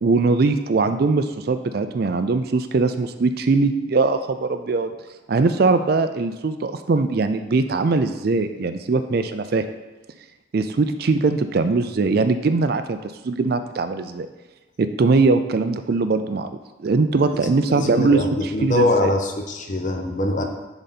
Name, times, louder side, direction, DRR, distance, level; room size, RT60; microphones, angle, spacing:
voice 1, 0.0-4.9 5.3-9.6 10.5-13.0 13.2-14.3 14.8-16.5 16.8-19.1, right 3 dB, 50° right, 9 dB, 0.4 m, -21 dB
voice 2, 17.4-20.4, left 1 dB, 40° left, 4 dB, 0.7 m, -23 dB
10.0 x 4.0 x 4.1 m, 1.1 s
head